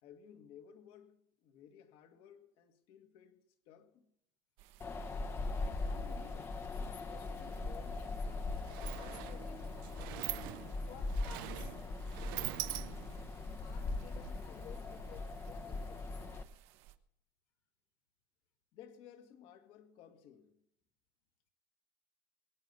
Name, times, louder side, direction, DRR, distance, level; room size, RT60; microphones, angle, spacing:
voice 1, 0.0-4.1 18.7-20.6, left 9 dB, 55° left, 1.9 m, -57 dB
sound 1, 4.6-17.0, right 11 dB, 60° right, 1.1 m, -60 dB
Wind, 4.8-16.4, left 3 dB, 20° left, 0.9 m, -40 dB
voice 2, 5.6-8.6 9.0-11.8 12.2-13.1 13.4-16.2, left 9 dB, 75° left, 1.5 m, -56 dB
Sliding door, 8.0-8.1 8.4-13.3, right 20 dB, 85° right, 0.5 m, -43 dB
22.5 x 9.4 x 5.5 m
cardioid pair, 150°, 11 cm